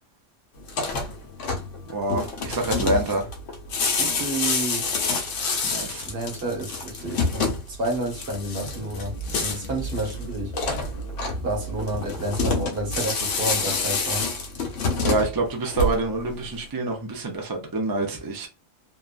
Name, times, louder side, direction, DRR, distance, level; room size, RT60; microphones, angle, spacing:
sound 1, 0.6-16.3, left 3 dB, 75° left, 1.1 m, -28 dB
voice 1, 1.9-3.3 5.1-5.2 5.6-6.1 15.0-18.5, right 2 dB, 35° right, 0.3 m, -26 dB
voice 2, 4.0-5.0 6.0-10.5 11.4-14.3, right 1 dB, 55° right, 1.2 m, -30 dB
sound 2, 8.6-13.1, right 3 dB, 40° left, 0.7 m, -36 dB
2.8 x 2.3 x 2.4 m
omnidirectional pair, 1.3 m